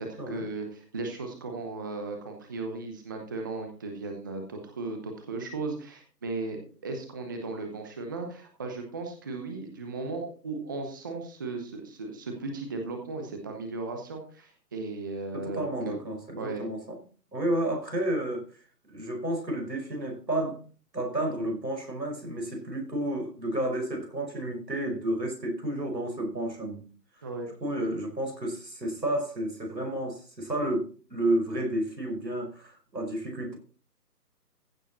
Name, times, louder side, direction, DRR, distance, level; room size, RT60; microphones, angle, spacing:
voice 1, 0.0-6.6 6.8-15.9 16.4-16.6 27.2-27.9, right 3 dB, 15° right, 0.8 m, -36 dB
voice 2, 15.3-17.0 17.3-18.5 18.9-20.6 20.9-26.9 27.6-33.6, right 1 dB, 85° right, 5.3 m, -31 dB
15.5 x 7.2 x 4.2 m
figure-of-eight pair, 145°, 49 cm